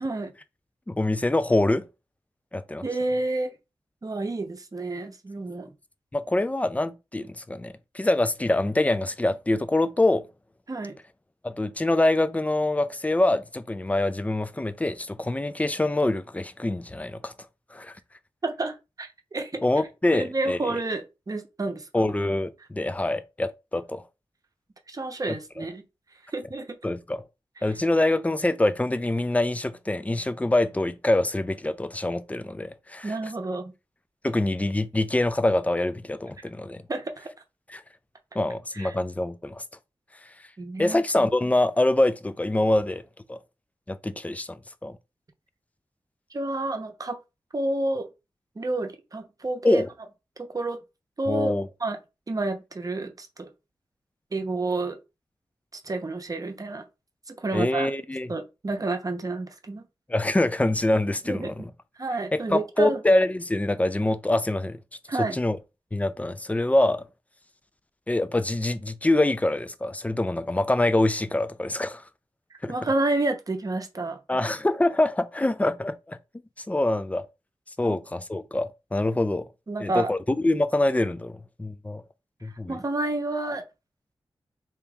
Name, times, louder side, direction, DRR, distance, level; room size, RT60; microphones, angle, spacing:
voice 1, 0.0-0.3 2.8-3.5 4.0-5.7 10.7-10.9 18.4-19.6 20.1-22.0 24.9-25.8 26.3-26.8 33.0-33.7 36.9-37.3 38.7-38.9 40.6-41.0 46.3-47.2 47.5-48.1 48.6-49.9 50.4-50.8 51.2-51.5 51.8-52.0 52.3-53.5 54.3-55.0 55.7-56.8 57.3-57.9 58.3-59.9 61.3-61.7 62.0-63.0 65.1-65.4 72.7-74.2 77.8-78.0 79.7-80.1 82.7-83.6, right 2 dB, 40° right, 0.8 m, -29 dB
voice 2, 0.9-1.8 2.5-2.8 6.1-10.2 11.4-17.3 17.7-17.9 19.6-20.7 21.9-24.0 25.3-25.6 26.8-27.2 27.6-33.1 34.2-36.8 37.7-37.8 38.3-39.6 40.8-43.0 43.3-43.4 43.9-45.0 49.6-49.9 51.3-51.7 57.5-58.3 60.1-61.7 62.3-64.8 65.2-65.6 65.9-67.0 68.1-72.0 72.6-72.7 74.3-76.2 76.6-77.2 77.8-79.4 79.8-82.0 82.4-82.8, left 2 dB, 15° left, 0.4 m, -25 dB
3.5 x 2.9 x 3.5 m
wide cardioid pair, 70°, 9 cm